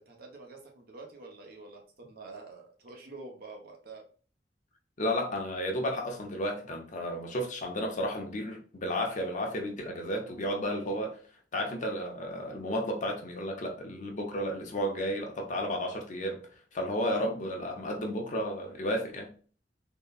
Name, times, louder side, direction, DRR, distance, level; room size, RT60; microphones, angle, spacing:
voice 1, 0.0-4.0, right 3 dB, 60° right, 0.8 m, -47 dB
voice 2, 5.0-11.2 11.5-16.4 16.7-19.3, equal, 45° left, 0.7 m, -32 dB
3.7 x 2.1 x 2.3 m
head